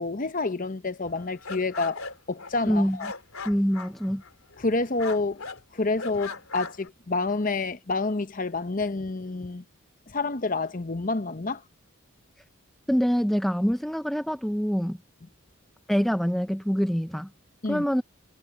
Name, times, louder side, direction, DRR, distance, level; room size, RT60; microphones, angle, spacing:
voice 1, 0.0-2.0 2.3-3.1 4.6-5.4 5.7-9.6 10.1-11.6 17.6-17.8, left 3 dB, 40° left, 0.9 m, -28 dB
sound 1, 1.1-4.7 5.0-5.6 6.0-6.9, left 4 dB, 80° left, 3.2 m, -39 dB
voice 2, 2.7-3.0 3.4-4.2 12.9-15.0 15.9-17.3 17.7-18.0, equal, ahead, 0.5 m, -25 dB
head